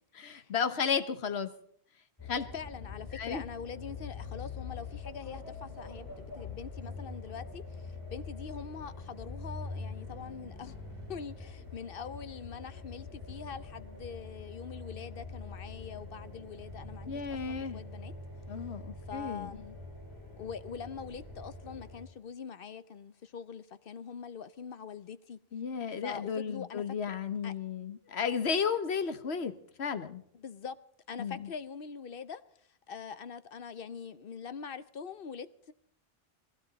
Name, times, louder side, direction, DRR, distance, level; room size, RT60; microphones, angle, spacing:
voice 1, 0.1-1.5 2.3-2.5 3.2-3.4 17.1-17.8 18.5-19.6 25.5-29.5 29.8-30.2 31.2-31.5, left 6 dB, 90° left, 1.3 m, -33 dB
sound 1, 2.2-22.0, left 3 dB, 20° left, 6.2 m, -44 dB
voice 2, 2.5-10.8 11.1-17.2 17.5-18.1 19.1-19.8 20.4-25.4 26.0-26.8 27.4-27.5 30.3-30.8 31.1-32.4 32.9-35.7, left 6 dB, 60° left, 1.0 m, -43 dB
20.5 x 16.0 x 4.1 m
omnidirectional pair, 1.1 m